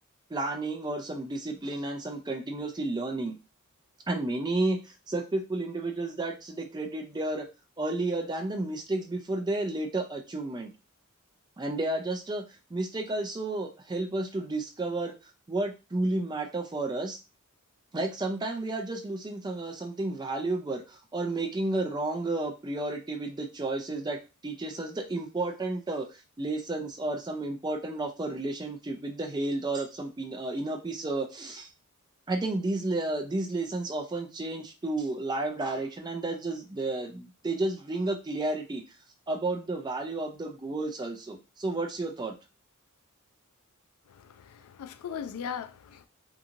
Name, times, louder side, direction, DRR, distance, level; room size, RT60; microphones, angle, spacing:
voice 1, 0.3-3.4 4.1-7.5 7.8-10.7 11.6-12.4 12.7-15.1 15.5-17.2 17.9-26.1 26.4-31.7 32.3-38.8 39.3-42.3, right 2 dB, 20° right, 0.4 m, -32 dB
voice 2, 44.1-46.1, left 7 dB, 75° left, 0.3 m, -39 dB
2.8 x 2.6 x 2.5 m
head